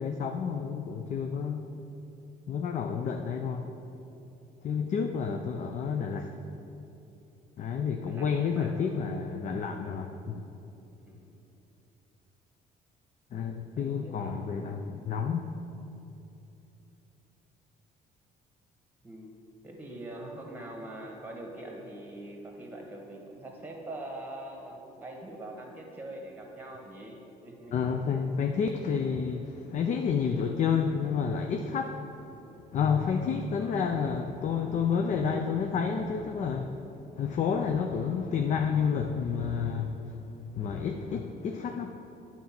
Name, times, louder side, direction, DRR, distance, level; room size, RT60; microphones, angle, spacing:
voice 1, 0.0-1.7 2.5-3.7 4.6-6.3 7.6-10.4 13.3-15.5 27.7-32.0 32.7-36.8 37.2-40.2 40.5-42.0, left 6 dB, 45° left, 5 dB, 0.5 m, -30 dB
voice 2, 8.0-8.9 11.0-11.3 13.8-14.4 19.0-19.3 19.6-27.2 27.4-27.9 33.6-33.8, right 1 dB, 10° right, 0 dB, 1.6 m, -43 dB
9.2 x 4.2 x 5.9 m, 2.9 s
cardioid pair, 110°, 17 cm